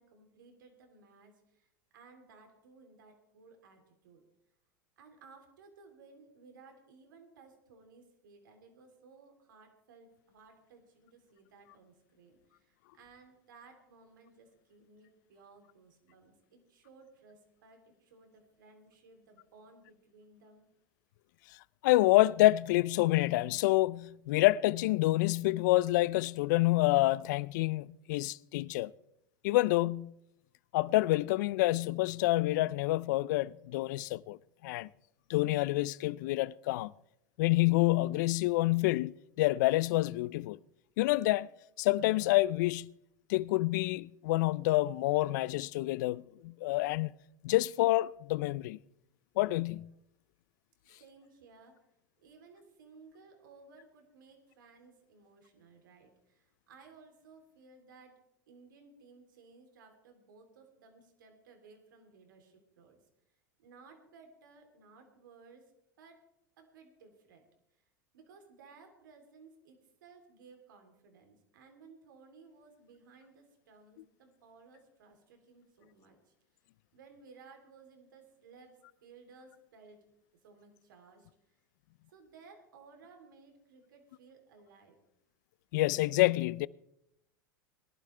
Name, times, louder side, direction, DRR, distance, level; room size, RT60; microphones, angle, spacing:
voice 1, 0.0-4.2 5.0-20.7 51.0-51.8 52.2-58.2 58.5-63.0 63.6-65.7 66.0-66.2 66.6-67.5 67.7-67.8 68.1-76.3 76.9-80.0 80.4-81.6 82.1-84.9, right 4 dB, 80° right, 3.3 m, -58 dB
voice 2, 21.8-28.9 29.4-30.1 30.7-34.4 34.6-34.9 35.3-36.9 37.4-40.6 41.0-41.5 41.8-42.9 43.3-47.1 47.4-48.8 49.4-49.9 85.7-86.7, left 18 dB, 70° left, 0.4 m, -28 dB
21.5 x 12.0 x 3.3 m
hypercardioid pair, 100°, 10 cm